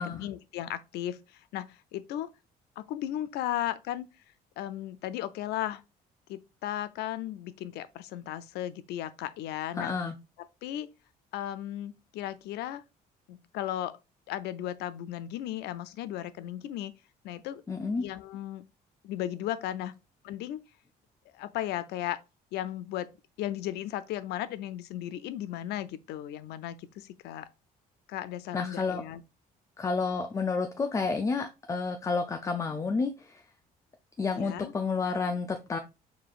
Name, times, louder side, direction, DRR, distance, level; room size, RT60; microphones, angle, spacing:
voice 1, 0.0-2.3 2.8-4.1 4.6-5.8 6.3-9.9 10.6-10.9 11.3-12.8 13.3-14.0 14.3-16.9 17.2-17.6 18.0-18.7 19.0-19.9 20.2-20.6 21.3-22.2 22.5-23.1 23.4-27.5 28.1-29.2 34.3-34.7, left 12 dB, 80° left, 0.4 m, -35 dB
voice 2, 9.8-10.1 17.7-18.1 28.5-29.0 29.8-33.4 34.2-35.8, left 4 dB, 20° left, 0.4 m, -30 dB
4.8 x 3.9 x 2.4 m
cardioid pair, 110°, 17 cm